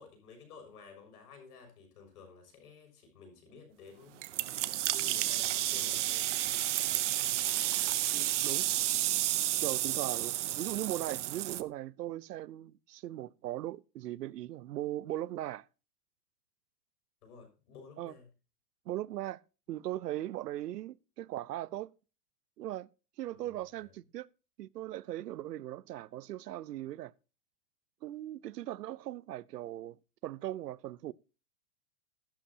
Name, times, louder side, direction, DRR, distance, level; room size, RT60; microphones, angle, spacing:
voice 1, 0.0-4.2 4.8-6.3 6.8-7.1 9.9-10.1 17.2-18.3 23.3-23.9, left 5 dB, 70° left, 6.6 m, -53 dB
sound 1, 4.2-11.6, right 14 dB, 50° right, 0.8 m, -31 dB
voice 2, 8.1-8.7 9.6-15.7 18.0-18.1 18.9-19.4 19.7-21.9 22.6-22.9 23.2-24.3 24.6-27.1 28.0-30.0 30.2-31.1, right 14 dB, 85° right, 0.8 m, -39 dB
13.5 x 11.5 x 2.8 m
supercardioid pair, 165°, 47 cm